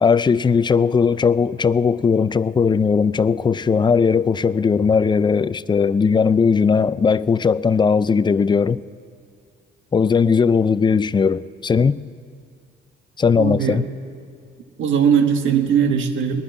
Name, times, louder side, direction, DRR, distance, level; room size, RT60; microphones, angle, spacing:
voice 1, 0.0-8.8 9.9-12.0 13.2-13.8, left 5 dB, 25° left, 0.4 m, -18 dB
voice 2, 13.4-13.8 14.8-16.4, right 7 dB, 75° right, 1.6 m, -19 dB
20.0 x 10.0 x 7.1 m
cardioid pair, 90°, 20 cm